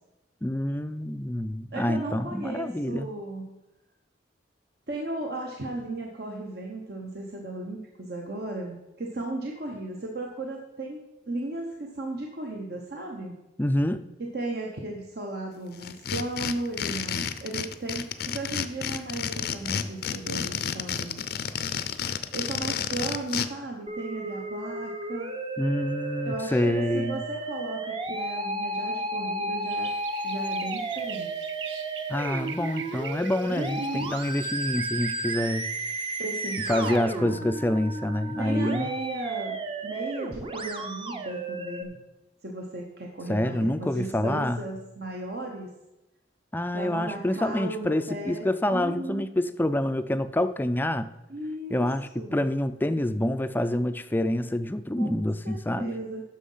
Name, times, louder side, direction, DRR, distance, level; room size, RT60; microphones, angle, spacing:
voice 1, 0.4-3.1 13.6-14.1 25.6-27.2 32.1-35.7 36.7-38.9 43.3-44.6 46.5-51.1 51.7-56.0, left 1 dB, 10° left, 11 dB, 0.4 m, -27 dB
voice 2, 1.7-3.6 4.9-13.4 14.2-21.2 22.3-25.3 26.2-29.9 30.2-31.5 33.5-34.2 36.2-37.5 38.4-42.0 42.4-45.7 46.7-48.4 48.7-49.3 51.3-51.8 52.2-52.5 55.0-56.2, right 2 dB, 60° right, 0 dB, 1.0 m, -35 dB
sound 1, 15.8-23.5, left 7 dB, 60° left, 0.6 m, -30 dB
Musical instrument, 23.9-41.8, right 2 dB, 30° right, 0.8 m, -33 dB
sound 2, 29.6-37.0, right 7 dB, 75° right, 0.6 m, -43 dB
10.0 x 6.4 x 5.6 m, 0.98 s
head